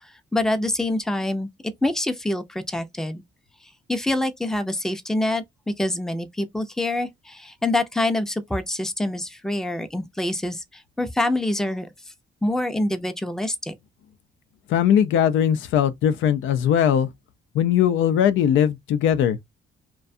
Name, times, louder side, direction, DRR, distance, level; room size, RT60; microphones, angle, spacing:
voice 1, 0.3-1.5 1.8-3.2 3.9-5.4 5.8-11.9 12.4-13.7, left 1 dB, 5° left, 0.4 m, -25 dB
voice 2, 14.7-17.1 17.6-19.4, left 9 dB, 80° left, 0.4 m, -20 dB
2.4 x 2.2 x 2.5 m
cardioid pair, 90°, 20 cm